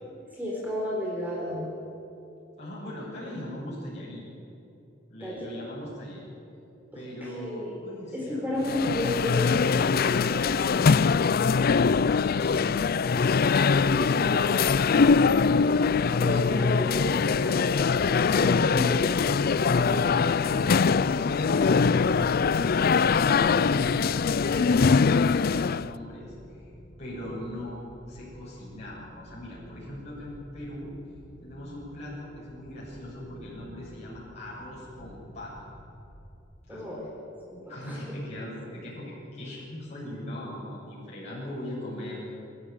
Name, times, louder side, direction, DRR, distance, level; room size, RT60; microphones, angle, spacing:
voice 1, 0.3-1.7 5.2-5.5 6.9-7.0 7.3-10.8 13.5-14.6 16.1-17.9 18.2-19.1 36.7-37.0 37.5-38.0, left 1 dB, 10° right, -4 dB, 4.2 m, -33 dB
voice 2, 2.6-4.3 5.1-6.3 6.9-8.5 12.3-12.7 19.4-26.6 27.0-27.8 28.1-30.9 31.4-35.5 36.7-36.9 37.7-42.2, left 1 dB, 35° left, -7 dB, 7.2 m, -39 dB
sound 1, 8.6-25.9, left 5 dB, 50° left, 0.4 m, -22 dB
sound 2, 20.0-36.9, equal, 35° right, 5.7 m, -50 dB
25.5 x 13.5 x 9.2 m, 3.0 s
head